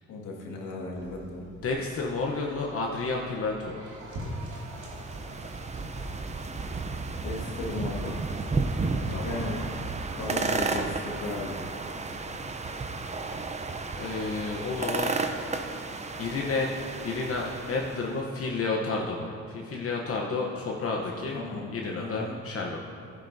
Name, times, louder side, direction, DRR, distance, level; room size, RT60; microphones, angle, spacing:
voice 1, 0.1-1.5 7.2-8.2 9.0-9.6 10.2-11.7 21.3-22.4, left 2 dB, 85° left, -2 dB, 1.9 m, -36 dB
sound 1, 0.9-13.9, equal, 90° right, 2.2 m, -46 dB
voice 2, 1.6-3.9 9.1-9.5 13.9-15.2 16.2-16.7 17.0-21.4 21.7-22.8, left 3 dB, 50° left, -1 dB, 0.9 m, -31 dB
sound 2, 4.1-18.2, right 3 dB, 25° right, 0.6 m, -33 dB
11.5 x 10.5 x 2.7 m, 2.7 s
cardioid pair, 90°, 30 cm